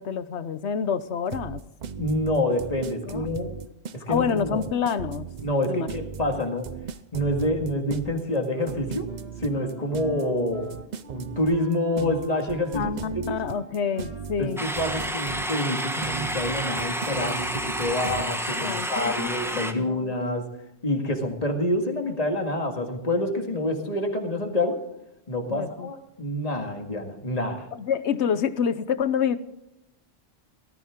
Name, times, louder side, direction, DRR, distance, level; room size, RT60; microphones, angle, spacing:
voice 1, 0.0-1.6 3.1-3.3 4.1-5.3 5.7-5.9 12.7-14.6 18.5-20.1 25.5-25.9 27.7-29.4, left 7 dB, 75° left, 14 dB, 1.1 m, -28 dB
sound 1, 1.3-18.3, right 7 dB, 50° right, 0.6 m, -37 dB
voice 2, 2.0-3.5 3.9-4.6 5.4-6.7 7.1-9.1 9.4-10.8 11.1-13.4 14.4-20.5 20.8-24.9 25.3-27.7, left 1 dB, 35° left, 4 dB, 2.1 m, -27 dB
Wind instrument woodwind instrument, 8.5-16.0, right 1 dB, 65° right, 2.9 m, -48 dB
sound 2, 14.6-19.7, equal, ahead, 1.3 m, -30 dB
18.0 x 14.0 x 3.7 m, 0.85 s
omnidirectional pair, 1.1 m